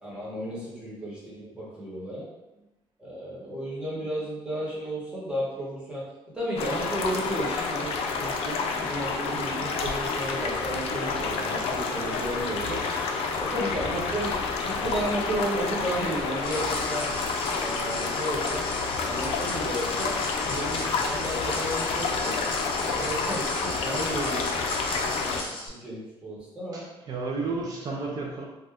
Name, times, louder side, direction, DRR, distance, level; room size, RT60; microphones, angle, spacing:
voice 1, 0.0-2.2 3.0-6.0 6.3-7.9 8.2-12.8 13.4-14.4 14.6-17.1 17.4-18.7 18.9-22.4 22.8-24.5 25.0-26.9, right 1 dB, 10° right, -7 dB, 0.9 m, -33 dB
sound 1, 6.5-25.4, left 4 dB, 80° left, 0.4 m, -29 dB
sound 2, 16.4-25.7, left 1 dB, 55° left, 0.8 m, -37 dB
voice 2, 26.7-28.5, right 3 dB, 40° right, -2 dB, 0.4 m, -33 dB
2.6 x 2.3 x 3.3 m, 0.99 s
cardioid pair, 175°, 10 cm